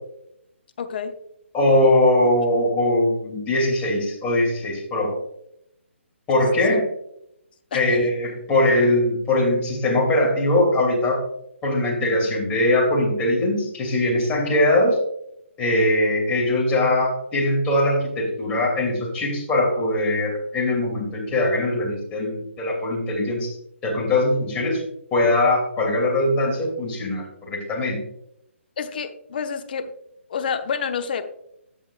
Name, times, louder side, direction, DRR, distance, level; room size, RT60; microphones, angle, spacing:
voice 1, 0.8-1.1 6.7-6.8 7.7-7.8 28.8-29.9 30.3-31.2, left 6 dB, 45° left, 7 dB, 0.8 m, -28 dB
voice 2, 1.5-5.1 6.3-6.9 7.7-11.2 11.6-15.0 15.6-23.6 23.8-24.8 25.1-28.0, left 1 dB, 15° left, -3 dB, 2.8 m, -21 dB
15.0 x 5.5 x 2.5 m, 0.77 s
figure-of-eight pair, 135°, 7 cm